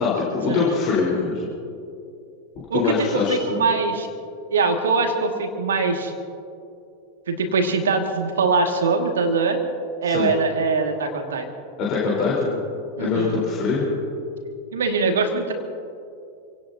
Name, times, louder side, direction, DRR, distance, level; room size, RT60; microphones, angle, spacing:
voice 1, 0.0-1.5 2.7-3.6 10.0-10.3 11.8-12.6 13.0-14.0, left 4 dB, 40° left, -6 dB, 4.3 m, -23 dB
voice 2, 2.7-4.1 4.5-6.1 7.3-9.6 10.0-11.5 13.0-13.4 14.7-15.5, right 4 dB, 65° right, 3 dB, 2.2 m, -22 dB
28.0 x 18.0 x 2.9 m, 2.6 s
figure-of-eight pair, 90°, 0 cm